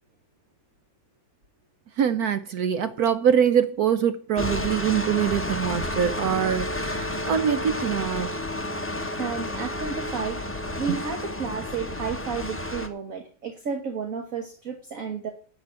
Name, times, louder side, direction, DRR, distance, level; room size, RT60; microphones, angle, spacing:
voice 1, 2.0-8.3, right 8 dB, 70° right, 0.9 m, -24 dB
sound 1, 4.4-12.9, left 1 dB, 10° left, 0.6 m, -31 dB
voice 2, 9.1-10.4 10.8-15.3, right 5 dB, 45° right, 1.6 m, -32 dB
11.0 x 5.2 x 8.5 m
omnidirectional pair, 2.2 m